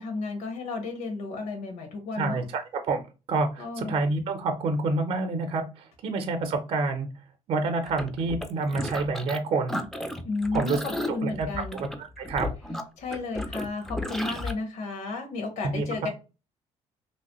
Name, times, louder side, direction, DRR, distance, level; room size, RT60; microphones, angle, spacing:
voice 1, 0.0-2.5 3.6-4.1 10.2-11.8 13.0-16.1, left 3 dB, 85° left, 4 dB, 1.2 m, -33 dB
voice 2, 2.2-3.0 3.3-5.6 6.0-7.1 7.5-9.8 10.5-10.8 11.2-11.5 11.7-12.5 15.7-15.9, right 3 dB, 50° right, 6 dB, 0.6 m, -28 dB
sound 1, 7.9-9.4 9.7-14.5, left 1 dB, 5° left, 0.4 m, -34 dB
3.1 x 2.6 x 2.9 m, 0.30 s
cardioid pair, 160°, 12 cm